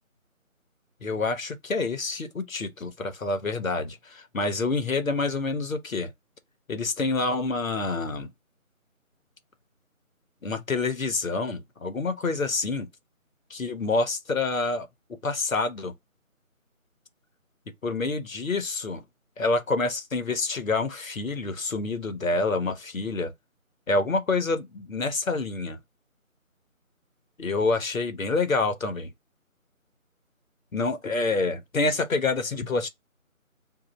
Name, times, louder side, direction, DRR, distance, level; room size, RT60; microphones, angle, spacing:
voice 1, 1.0-6.1 6.7-8.3 10.4-12.9 13.5-14.9 15.2-15.9 17.8-19.0 19.4-23.3 23.9-25.8 27.4-29.1 30.7-32.9, left 3 dB, 70° left, 0.9 m, -27 dB
2.4 x 2.1 x 3.7 m
figure-of-eight pair, 165°, 42 cm